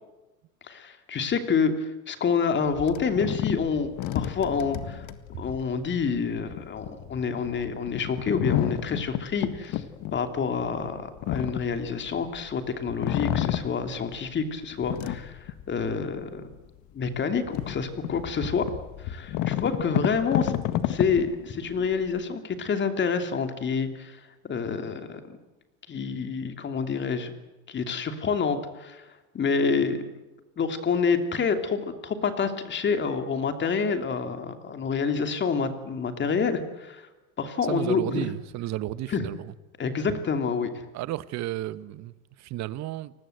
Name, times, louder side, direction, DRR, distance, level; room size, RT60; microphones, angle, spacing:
voice 1, 0.7-5.0 5.4-9.8 10.1-16.4 16.9-18.7 19.0-20.5 20.9-25.4 25.9-27.3 27.7-29.0 29.3-30.0 30.6-37.1 37.4-38.3 39.1-39.3 39.8-40.8, left 5 dB, 25° left, 2.9 m, -28 dB
sound 1, 2.7-12.5 12.9-14.3 14.7-16.0 16.5-16.6 17.1-22.2, left 12 dB, 45° left, 1.8 m, -31 dB
voice 2, 37.7-39.5 40.9-43.1, right 15 dB, 40° right, 1.1 m, -33 dB
29.5 x 20.0 x 8.0 m
supercardioid pair, 125°, 42 cm